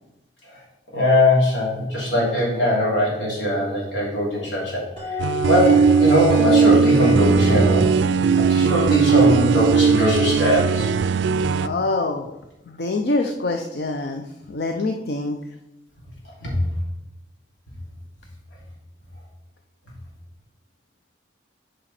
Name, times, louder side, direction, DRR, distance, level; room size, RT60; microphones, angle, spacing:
voice 1, 0.9-7.8 8.4-10.9 16.4-16.6, left 1 dB, 90° left, -4 dB, 3.3 m, -21 dB
sound 1, 5.0-10.1, right 1 dB, 25° left, 2.0 m, -27 dB
sound 2, 5.2-11.7, right 5 dB, 75° right, 0.3 m, -18 dB
voice 2, 11.6-12.3 12.7-15.4, left 2 dB, 60° left, 4 dB, 0.5 m, -25 dB
8.9 x 5.1 x 4.3 m, 0.92 s
head